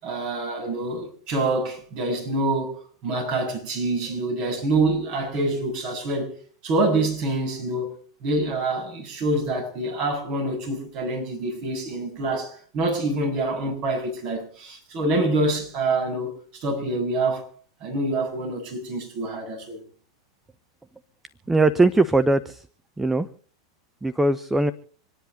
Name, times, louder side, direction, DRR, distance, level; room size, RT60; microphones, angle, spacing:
voice 1, 0.0-6.3 6.6-7.9 8.2-17.4 17.8-19.8, right 2 dB, 45° right, 7.5 m, -26 dB
voice 2, 21.5-22.6 23.0-23.3 24.0-24.7, right 2 dB, 10° right, 0.7 m, -20 dB
26.5 x 10.5 x 3.9 m
figure-of-eight pair, 90°, 2 cm